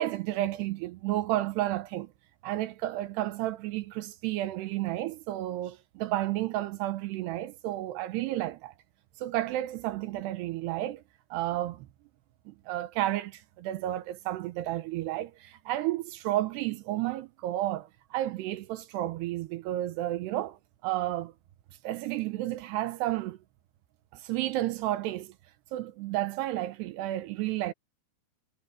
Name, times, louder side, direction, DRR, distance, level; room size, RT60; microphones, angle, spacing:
voice 1, 0.0-2.1 2.4-8.7 9.2-11.0 11.3-11.9 12.5-21.3 21.8-23.4 24.1-25.3 25.7-27.7, right 15 dB, 75° right, 2.9 m, -32 dB
omnidirectional pair, 5.0 m